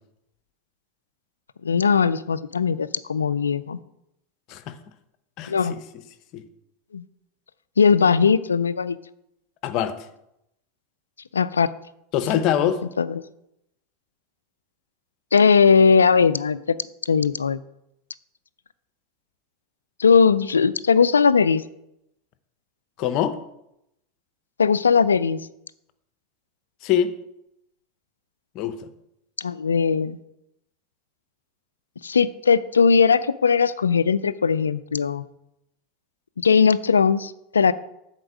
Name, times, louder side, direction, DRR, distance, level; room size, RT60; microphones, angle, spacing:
voice 1, 1.6-3.8 5.5-5.8 6.9-7.0 7.8-9.0 11.3-11.7 12.4-12.5 13.0-13.2 15.3-16.8 17.1-17.6 20.0-21.6 24.6-25.5 29.4-30.2 32.0-35.3 36.4-37.7, left 5 dB, 90° left, 0.3 m, -19 dB
voice 2, 9.6-10.0 12.1-12.8 23.0-23.4 26.8-27.1 28.5-28.9, left 10 dB, 50° left, 0.8 m, -23 dB
7.9 x 4.4 x 6.3 m
hypercardioid pair, 90°, 0 cm